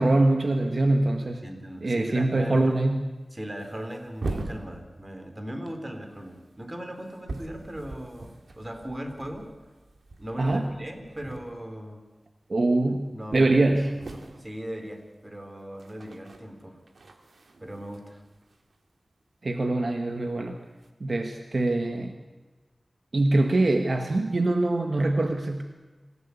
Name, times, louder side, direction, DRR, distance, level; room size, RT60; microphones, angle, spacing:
voice 1, 0.0-1.4 1.8-3.0 10.4-10.6 12.5-13.9 19.4-20.6 21.0-22.1 23.1-25.6, right 2 dB, 60° right, 5 dB, 1.6 m, -23 dB
voice 2, 1.4-2.7 3.3-9.5 10.2-12.0 13.1-13.6 14.0-16.8 17.6-18.2, equal, 25° right, 5 dB, 4.0 m, -38 dB
sound 1, 1.8-1.9 2.2-2.3 3.0-3.1 3.5-5.3 5.7-11.9 12.2-12.5 12.9-13.0 13.2-19.5 20.4-20.9, right 2 dB, 90° right, 2.3 m, -42 dB
26.5 x 16.0 x 8.5 m, 1.2 s
wide cardioid pair, 75°, 0 cm